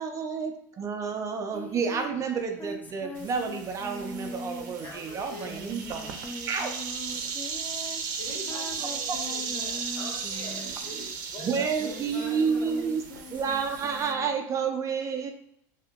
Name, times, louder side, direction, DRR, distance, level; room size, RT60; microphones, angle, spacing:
voice 1, 0.0-6.2 6.5-6.7 9.1-9.2 11.4-13.0 13.3-15.3, right 6 dB, 30° right, 4 dB, 0.5 m, -30 dB
Singing, 1.5-10.9 11.4-14.3, equal, 15° left, 0.5 m, -42 dB
sound 1, 3.2-14.1, right 6 dB, 85° right, 0.6 m, -36 dB
voice 2, 4.8-5.6 9.9-13.0, left 2 dB, 45° left, -2 dB, 1.4 m, -44 dB
voice 3, 8.2-9.8 12.0-12.1, left 1 dB, 70° left, -9 dB, 1.4 m, -44 dB
2.8 x 2.5 x 3.6 m, 0.72 s
supercardioid pair, 110°, 10 cm